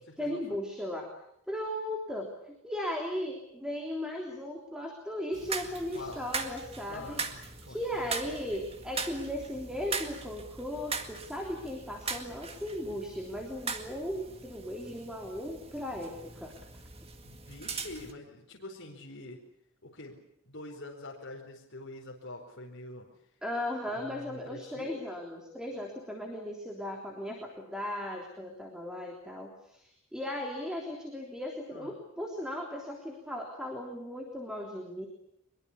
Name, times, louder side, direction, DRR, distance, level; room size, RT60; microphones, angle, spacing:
voice 1, 0.2-1.1 1.5-7.2 7.6-16.5 23.4-35.1, left 1 dB, 5° right, 1 dB, 3.4 m, -37 dB
sound 1, 5.3-18.1, right 4 dB, 25° right, 2.0 m, -40 dB
voice 2, 6.9-8.1 17.2-19.4 19.8-20.2 20.4-23.1 23.9-25.0 31.7-32.0, left 2 dB, 55° left, -1 dB, 4.6 m, -45 dB
23.5 x 22.5 x 8.5 m, 0.75 s
head